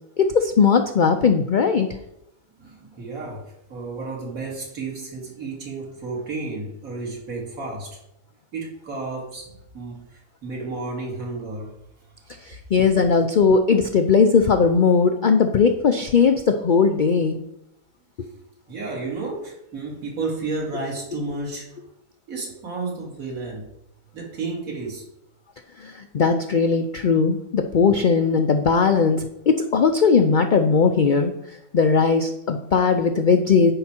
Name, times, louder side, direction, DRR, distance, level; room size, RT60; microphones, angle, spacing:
voice 1, 0.2-1.9 12.5-17.4 25.8-31.3 31.7-33.7, left 5 dB, 90° left, 6 dB, 0.4 m, -18 dB
voice 2, 2.6-8.0 8.5-11.7 18.7-21.8 22.3-23.7 24.1-25.0, right 3 dB, 70° right, -2 dB, 2.5 m, -32 dB
10.5 x 4.8 x 4.3 m, 0.82 s
omnidirectional pair, 1.5 m